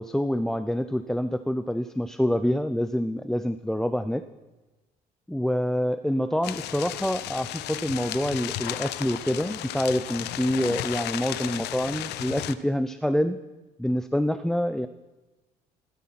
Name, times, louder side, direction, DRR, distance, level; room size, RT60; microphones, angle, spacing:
voice 1, 0.0-4.2 5.3-13.4 13.8-14.9, equal, 5° left, 12 dB, 0.5 m, -26 dB
sound 1, 6.4-12.5, left 13 dB, 80° left, 0.8 m, -34 dB
16.5 x 13.0 x 5.9 m, 1.1 s
cardioid pair, 110°, 17 cm